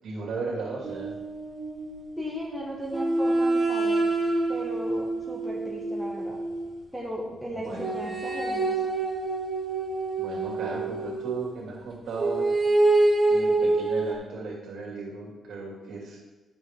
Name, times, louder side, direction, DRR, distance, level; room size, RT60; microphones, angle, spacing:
voice 1, 0.0-1.1 7.5-7.9 10.2-12.5 13.3-16.2, right 3 dB, 60° right, -2 dB, 2.3 m, -36 dB
sound 1, 0.8-2.3 2.9-6.8 7.8-11.5 12.2-14.1, right 2 dB, 20° right, 1.3 m, -26 dB
voice 2, 2.2-4.1 4.5-6.4 6.9-8.9, equal, ahead, -2 dB, 1.1 m, -36 dB
10.0 x 6.0 x 3.6 m, 1.2 s
cardioid pair, 155°, 0 cm